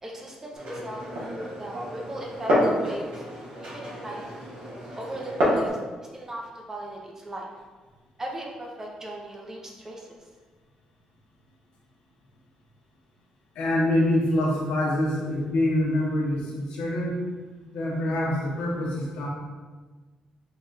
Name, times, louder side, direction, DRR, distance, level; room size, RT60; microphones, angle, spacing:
voice 1, 0.0-1.0 1.6-2.5 2.8-3.2 3.6-4.4 5.0-5.8 6.1-7.5 8.2-10.1, right 1 dB, 20° right, -1 dB, 0.7 m, -38 dB
Glass, 0.6-5.7, equal, 90° right, 1.4 m, -28 dB
voice 2, 13.5-17.2 17.7-19.3, left 1 dB, 85° left, -3 dB, 1.0 m, -25 dB
3.9 x 2.5 x 3.9 m, 1.4 s
cardioid pair, 115°, 2 cm